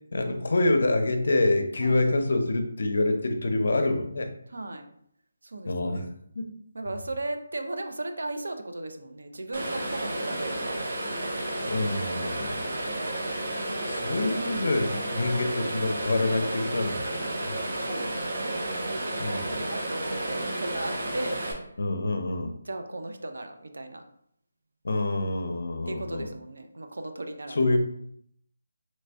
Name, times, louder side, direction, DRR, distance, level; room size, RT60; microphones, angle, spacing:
voice 1, 0.1-4.3 5.7-6.5 11.6-12.7 13.8-17.6 19.2-19.5 21.8-22.5 24.8-26.3 27.5-27.8, left 2 dB, 60° left, 6 dB, 0.5 m, -26 dB
voice 2, 4.5-4.9 5.4-6.0 6.7-10.8 17.8-21.4 22.7-24.0 25.9-27.6, right 2 dB, 85° right, 6 dB, 0.5 m, -36 dB
sound 1, 9.5-21.5, right 1 dB, 45° right, 0.8 m, -32 dB
3.1 x 2.6 x 3.4 m, 0.69 s
hypercardioid pair, 175°, 0 cm